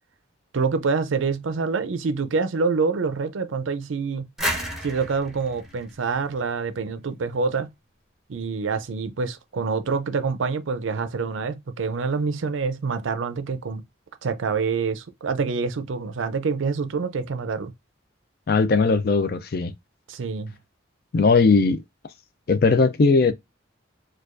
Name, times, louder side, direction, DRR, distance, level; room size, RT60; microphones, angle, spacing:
voice 1, 0.5-4.3 4.8-7.7 8.3-13.8 14.2-17.7 20.1-20.6, right 4 dB, 85° right, 0.5 m, -26 dB
sound 1, 4.4-7.1, equal, ahead, 0.7 m, -32 dB
voice 2, 18.5-19.7 21.1-21.8 22.5-23.3, left 4 dB, 50° left, 0.4 m, -18 dB
4.6 x 2.3 x 2.5 m
head